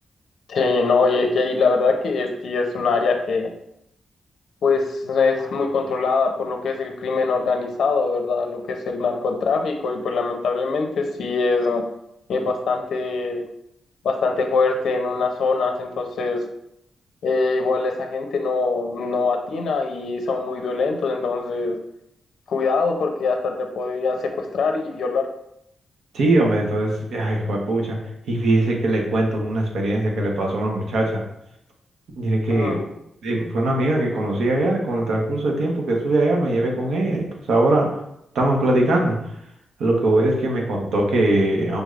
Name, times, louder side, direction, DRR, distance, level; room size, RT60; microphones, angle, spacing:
voice 1, 0.5-3.5 4.6-11.8 12.3-13.4 14.0-16.5 17.2-21.8 22.5-25.3 32.5-32.8, left 4 dB, 70° left, 3 dB, 0.5 m, -23 dB
voice 2, 26.1-28.0 28.3-31.2 32.2-32.8 33.2-37.9 38.3-39.2 39.8-41.8, right 1 dB, 85° right, 0 dB, 1.0 m, -21 dB
5.1 x 3.2 x 2.4 m, 0.79 s
wide cardioid pair, 125°, 0 cm